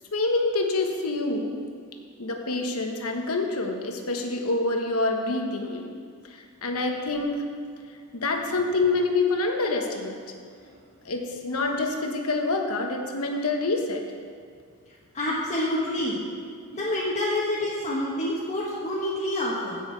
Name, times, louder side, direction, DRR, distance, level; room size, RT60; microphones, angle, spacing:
voice 1, 0.1-1.5 2.2-5.9 6.3-7.4 8.1-10.2 11.0-14.0, left 3 dB, 75° left, 3 dB, 1.2 m, -26 dB
voice 2, 15.1-16.2 16.7-19.8, left 1 dB, 30° left, -7 dB, 1.4 m, -27 dB
16.0 x 6.4 x 4.6 m, 2.2 s
head